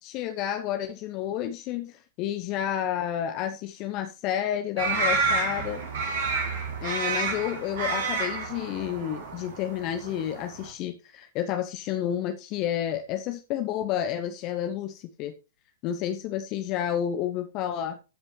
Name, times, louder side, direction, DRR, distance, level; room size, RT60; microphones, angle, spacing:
voice 1, 0.0-5.9 6.8-15.3 15.8-18.0, left 10 dB, 35° left, 7 dB, 1.0 m, -30 dB
sound 1, 4.8-10.7, right 4 dB, 55° right, 2.7 m, -29 dB
14.5 x 5.5 x 3.3 m, 0.31 s
figure-of-eight pair, 100°, 0 cm